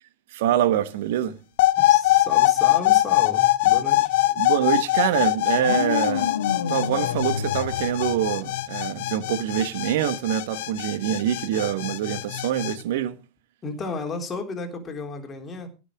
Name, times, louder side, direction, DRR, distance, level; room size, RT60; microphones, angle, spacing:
voice 1, 0.3-1.4 4.4-6.4 6.7-13.2, right 11 dB, 55° right, 1.2 m, -25 dB
sound 1, 1.6-12.7, left 16 dB, 50° left, 0.9 m, -22 dB
voice 2, 1.8-4.1 13.6-15.7, left 3 dB, 20° left, 3.6 m, -33 dB
sound 2, 5.5-8.7, left 7 dB, 65° left, 1.7 m, -29 dB
17.0 x 6.3 x 6.3 m
figure-of-eight pair, 90°, 0 cm